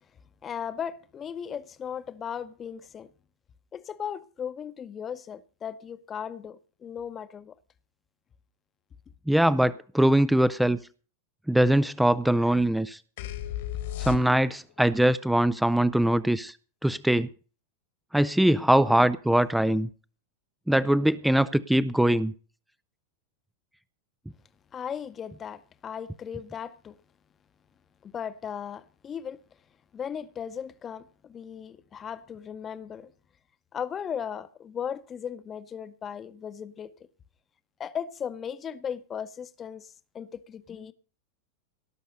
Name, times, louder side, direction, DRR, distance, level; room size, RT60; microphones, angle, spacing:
voice 1, 0.4-3.1 3.7-7.5 24.7-27.0 28.0-29.4 29.9-33.1 33.7-37.0 37.8-40.9, left 8 dB, 25° left, 1.0 m, -37 dB
voice 2, 9.3-10.8 11.5-13.0 14.0-16.5 16.8-17.3 18.1-19.9 20.7-22.3, right 1 dB, 5° right, 0.5 m, -22 dB
sound 1, 13.2-14.7, left 13 dB, 55° left, 1.6 m, -34 dB
18.0 x 6.5 x 6.5 m
figure-of-eight pair, 90°, 0 cm